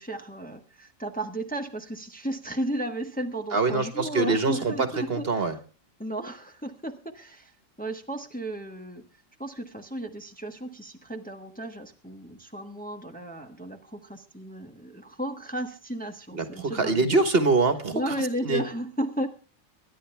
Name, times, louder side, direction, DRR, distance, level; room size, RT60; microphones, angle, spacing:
voice 1, 0.0-5.4 6.0-7.5 7.8-9.0 9.4-17.0 17.9-19.3, right 1 dB, 5° left, 4 dB, 1.2 m, -34 dB
voice 2, 3.5-5.6 16.3-18.1 18.4-18.6, right 3 dB, 50° right, 10 dB, 1.5 m, -24 dB
23.5 x 10.0 x 3.4 m, 0.37 s
omnidirectional pair, 1.4 m